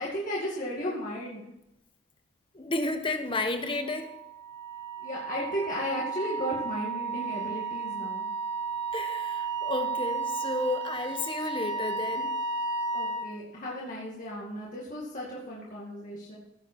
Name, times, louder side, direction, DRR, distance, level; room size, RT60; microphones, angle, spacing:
voice 1, 0.0-1.4 5.0-8.3 11.7-11.8 12.9-16.4, equal, 40° left, -5 dB, 2.2 m, -35 dB
voice 2, 2.5-4.1 8.9-12.4, left 2 dB, 25° left, 7 dB, 1.2 m, -32 dB
Wind instrument woodwind instrument, 3.8-13.3, right 4 dB, 55° right, 3.3 m, -33 dB
15.5 x 8.0 x 4.5 m, 0.89 s
head